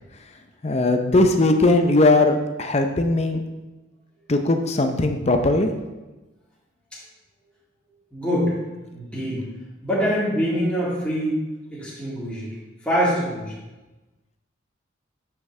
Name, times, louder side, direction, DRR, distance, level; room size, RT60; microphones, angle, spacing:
voice 1, 0.6-3.4 4.3-5.7, left 2 dB, 30° left, 6 dB, 0.6 m, -19 dB
voice 2, 8.1-8.5 8.9-9.4 9.8-11.4 11.7-12.5 12.8-13.6, equal, 5° left, -10 dB, 2.3 m, -24 dB
9.1 x 5.9 x 3.3 m, 1.1 s
head